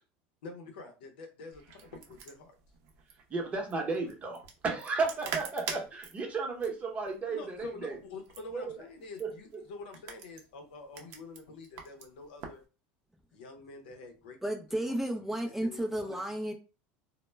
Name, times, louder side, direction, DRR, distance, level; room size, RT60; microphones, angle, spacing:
voice 1, 0.4-2.6 7.3-12.6 13.3-14.4 14.7-15.0 15.4-16.1, left 3 dB, 85° left, 0.6 m, -47 dB
sound 1, 1.5-12.6, right 6 dB, 55° right, 0.6 m, -45 dB
voice 2, 3.3-8.0 8.5-8.7 9.2-9.3, right 4 dB, 25° right, 0.8 m, -33 dB
voice 3, 14.4-16.5, right 1 dB, 5° right, 0.4 m, -33 dB
2.1 x 2.0 x 3.2 m
supercardioid pair, 120°, 5 cm